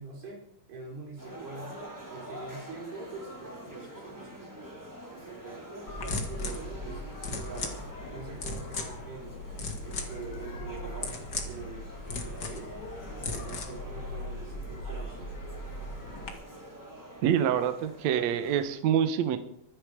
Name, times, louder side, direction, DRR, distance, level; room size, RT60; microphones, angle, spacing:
voice 1, 0.0-1.8 2.1-4.5 5.1-5.7 5.9-7.8 8.1-9.4 9.8-12.7 13.2-15.3, right 4 dB, 85° right, -6 dB, 6.6 m, -44 dB
sound 1, 1.2-18.8, right 1 dB, 5° right, 3.1 m, -46 dB
sound 2, 5.9-16.3, left 2 dB, 40° left, 1.7 m, -38 dB
voice 2, 17.2-19.4, right 9 dB, 70° right, 9 dB, 1.8 m, -26 dB
24.5 x 8.6 x 5.0 m, 0.68 s
omnidirectional pair, 4.5 m